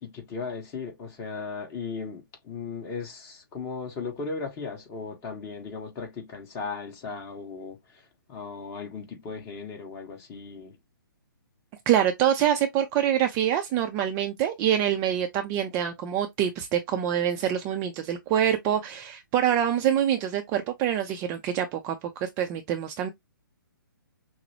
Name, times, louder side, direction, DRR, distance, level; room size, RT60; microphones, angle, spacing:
voice 1, 0.0-7.8 8.3-10.8, left 4 dB, 25° left, 1.3 m, -36 dB
voice 2, 11.9-23.1, right 10 dB, 20° right, 0.4 m, -25 dB
5.8 x 2.0 x 2.8 m
figure-of-eight pair, 135°, 12 cm